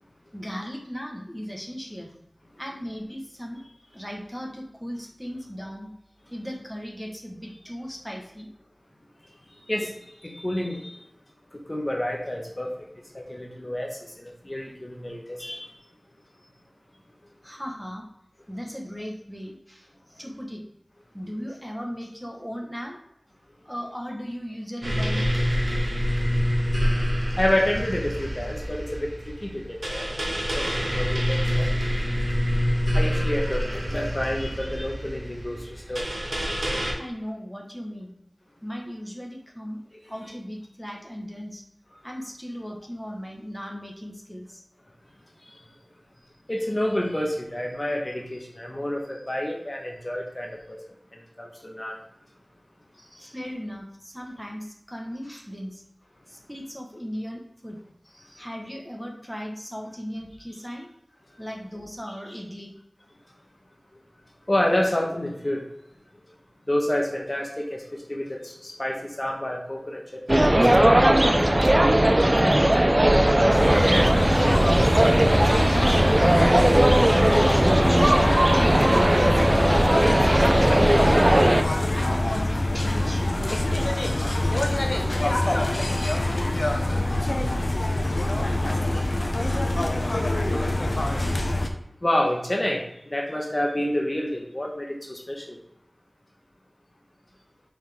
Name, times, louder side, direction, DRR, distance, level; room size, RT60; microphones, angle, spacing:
voice 1, 0.3-2.1 2.6-3.6 3.9-5.9 6.3-8.5 17.4-18.0 18.5-20.6 21.1-23.0 23.6-25.2 36.8-38.1 38.6-39.8 40.1-41.6 42.0-44.6 53.2-55.8 56.3-57.8 58.4-60.9 61.4-62.7 73.1-75.2 75.6-77.7 78.2-81.4 81.9-83.4, equal, ahead, -1 dB, 1.3 m, -37 dB
voice 2, 9.7-10.9 11.5-12.8 13.1-15.7 27.4-30.1 30.5-31.7 32.9-36.1 39.9-40.0 45.5-45.6 46.5-50.8 51.4-52.0 53.1-53.2 64.5-65.6 66.7-71.7 92.0-95.6, left 1 dB, 35° left, 0 dB, 1.1 m, -29 dB
sound 1, 24.8-36.9, equal, 85° right, 1.4 m, -26 dB
sound 2, 70.3-81.6, right 1 dB, 30° right, 0.5 m, -18 dB
sound 3, 73.5-91.7, left 1 dB, 55° left, 0.8 m, -25 dB
5.7 x 4.9 x 3.5 m, 0.77 s
wide cardioid pair, 50°, 0 cm